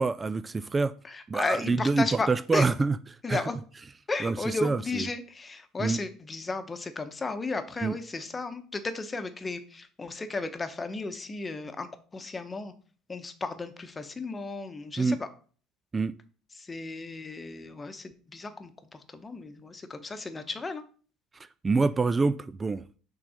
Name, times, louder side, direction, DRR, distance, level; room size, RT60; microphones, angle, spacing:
voice 1, 0.0-0.9 1.3-3.0 3.3-3.4 4.2-5.1 5.8-6.0 7.8-8.0 15.0-15.2 15.9-16.1 21.3-22.8, right 4 dB, 25° right, 13 dB, 0.3 m, -26 dB
voice 2, 1.1-2.7 3.2-3.6 4.1-11.9 12.1-12.7 13.1-15.3 16.6-20.8, left 3 dB, 25° left, 9 dB, 1.0 m, -34 dB
6.0 x 3.9 x 4.9 m, 0.42 s
hypercardioid pair, 75°, 0 cm